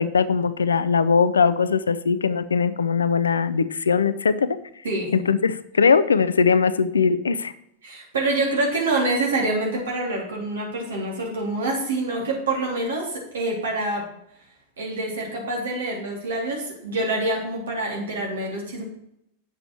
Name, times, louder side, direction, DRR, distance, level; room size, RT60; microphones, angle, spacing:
voice 1, 0.0-4.6 5.1-7.5, left 5 dB, 70° left, 15 dB, 0.5 m, -20 dB
voice 2, 4.8-5.2 7.8-14.0 14.8-18.8, right 2 dB, 65° right, -1 dB, 3.2 m, -26 dB
8.9 x 7.2 x 4.5 m, 0.76 s
figure-of-eight pair, 90°, 0 cm